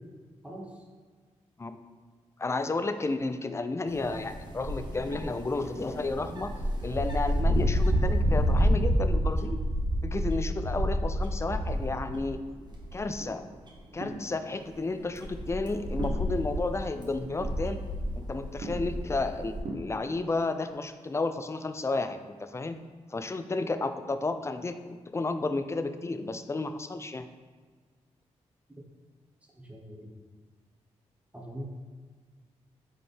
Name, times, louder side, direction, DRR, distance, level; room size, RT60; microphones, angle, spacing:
voice 1, 0.4-0.8 29.5-30.2 31.3-31.6, equal, 10° right, -2 dB, 1.0 m, -42 dB
voice 2, 2.4-6.5 6.8-9.6 10.0-12.4 12.9-13.5 13.9-17.8 18.1-22.8 23.1-27.3, left 3 dB, 20° left, 9 dB, 0.3 m, -32 dB
sound 1, 3.9-12.4 12.7-13.2 13.7-13.8 14.6-19.6, equal, 35° right, 1.1 m, -29 dB
sound 2, 11.7-20.0, right 1 dB, 55° right, 0.8 m, -44 dB
3.8 x 3.8 x 3.4 m, 1.5 s
supercardioid pair, 45°, 13 cm